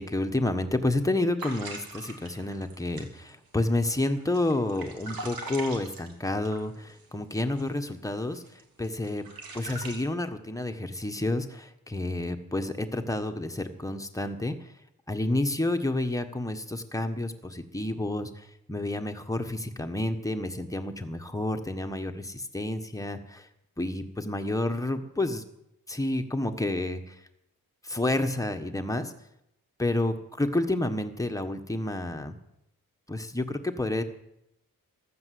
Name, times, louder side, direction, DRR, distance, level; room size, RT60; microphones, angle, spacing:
voice 1, 0.0-8.4 8.8-9.2 9.5-14.6 15.1-18.3 18.7-23.4 23.8-25.4 25.9-27.0 27.8-29.1 29.8-32.4 33.1-34.0, left 1 dB, 10° left, 6 dB, 1.4 m, -29 dB
sound 1, 1.4-7.1 7.5-7.7 8.1-10.0, right 3 dB, 85° right, 3.1 m, -42 dB
15.0 x 12.0 x 7.8 m, 0.81 s
wide cardioid pair, 140°, 34 cm